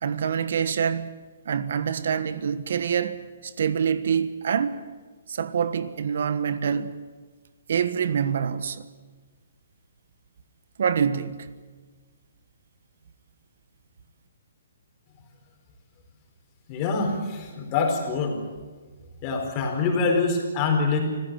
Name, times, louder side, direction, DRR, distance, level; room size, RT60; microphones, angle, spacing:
voice 1, 0.0-4.8 5.3-6.9 7.7-8.9 10.8-11.5, right 7 dB, 60° right, 1.4 m, -26 dB
voice 2, 16.7-18.4 19.2-21.0, left 4 dB, 25° left, 4.6 m, -25 dB
26.0 x 15.5 x 9.0 m
hypercardioid pair, 165°, 0 cm